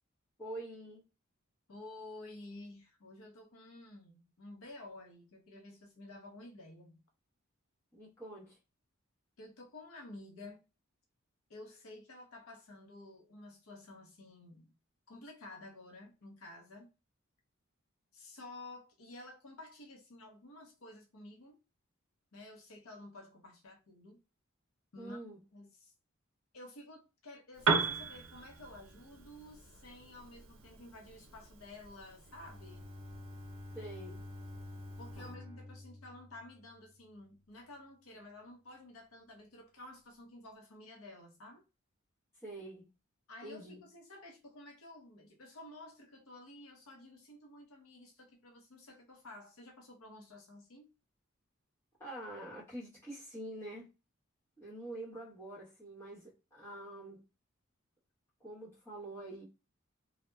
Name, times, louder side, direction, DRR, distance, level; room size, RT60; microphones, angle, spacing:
voice 1, 0.4-1.0 7.9-8.6 25.0-25.4 33.7-34.3 35.1-35.4 42.4-42.9 43.4-43.8 52.0-53.9 54.6-57.2 58.4-59.5, right 1 dB, 10° left, 1.0 m, -46 dB
voice 2, 1.7-7.0 9.4-10.6 11.5-14.7 15.1-16.9 18.1-21.6 22.3-24.2 24.9-25.2 25.5-25.9 26.5-32.9 35.0-41.6 43.3-50.9, left 2 dB, 90° left, 0.7 m, -52 dB
Piano, 27.5-35.3, right 4 dB, 85° right, 0.5 m, -39 dB
Bowed string instrument, 32.2-37.0, left 1 dB, 30° right, 0.8 m, -49 dB
2.7 x 2.0 x 2.2 m
head